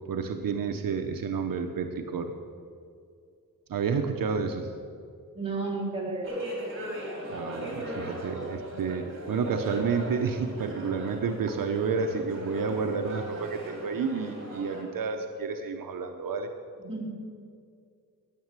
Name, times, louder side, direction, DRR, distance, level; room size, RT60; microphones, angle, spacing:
voice 1, 0.1-2.3 3.7-4.7 7.3-16.5, right 5 dB, 80° right, 6 dB, 0.9 m, -30 dB
voice 2, 5.3-6.3 6.6-6.8 16.9-17.1, right 3 dB, 15° right, -6 dB, 3.5 m, -33 dB
sound 1, 6.2-14.8, equal, 40° right, 3.4 m, -38 dB
13.0 x 8.4 x 7.5 m, 2.3 s
wide cardioid pair, 130°, 33 cm